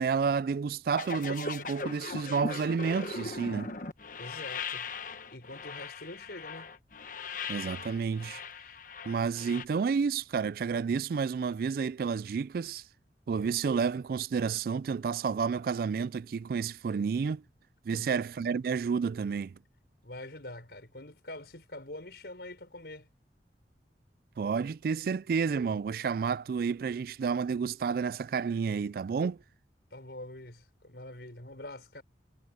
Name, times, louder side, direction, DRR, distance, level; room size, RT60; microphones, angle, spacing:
voice 1, 0.0-3.7 7.5-8.4 9.1-12.8 13.3-17.4 17.9-19.5 24.4-29.4, right 5 dB, 55° right, 0.3 m, -30 dB
sound 1, 0.9-9.6, left 4 dB, 50° left, 1.2 m, -39 dB
voice 2, 4.2-4.9 5.3-6.7 17.9-18.2 20.0-23.1 29.9-32.0, left 1 dB, 70° left, 4.8 m, -45 dB
head